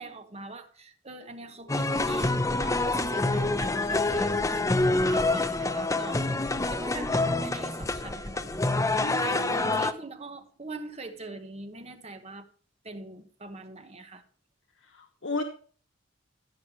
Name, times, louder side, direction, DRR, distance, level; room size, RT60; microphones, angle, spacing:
voice 1, 0.0-12.4 12.8-14.2, right 3 dB, 35° right, 1.2 m, -42 dB
sound 1, 1.7-9.9, left 2 dB, 15° left, 0.6 m, -26 dB
voice 2, 9.0-9.6 15.0-15.4, left 2 dB, 80° left, 1.2 m, -34 dB
15.0 x 7.9 x 3.1 m
head